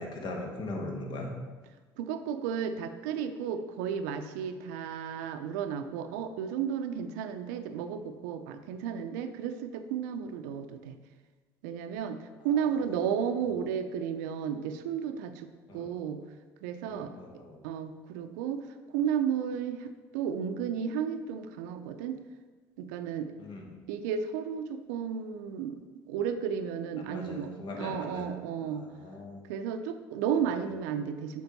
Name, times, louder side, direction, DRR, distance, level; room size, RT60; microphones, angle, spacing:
voice 1, 0.0-1.3 15.7-15.9 16.8-17.6 23.4-23.8 27.0-28.3 28.6-29.4 30.5-30.6, left 2 dB, 55° left, 1 dB, 1.4 m, -40 dB
voice 2, 2.0-11.0 11.6-16.2 16.6-17.1 17.6-18.7 18.9-22.2 22.8-23.3 23.9-25.8 26.1-28.8 29.5-31.4, right 8 dB, 85° right, 9 dB, 0.5 m, -33 dB
6.9 x 4.4 x 4.0 m, 1.4 s
supercardioid pair, 70°, 9 cm